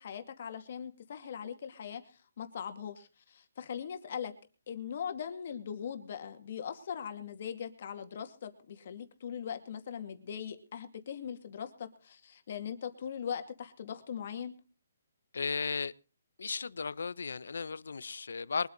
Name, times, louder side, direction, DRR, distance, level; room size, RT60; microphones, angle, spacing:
voice 1, 0.0-4.3 4.7-14.5, left 8 dB, 40° left, 2.5 m, -40 dB
voice 2, 15.3-15.9 16.4-18.7, left 5 dB, 80° left, 0.9 m, -35 dB
23.0 x 9.2 x 4.1 m
hypercardioid pair, 175°, 0 cm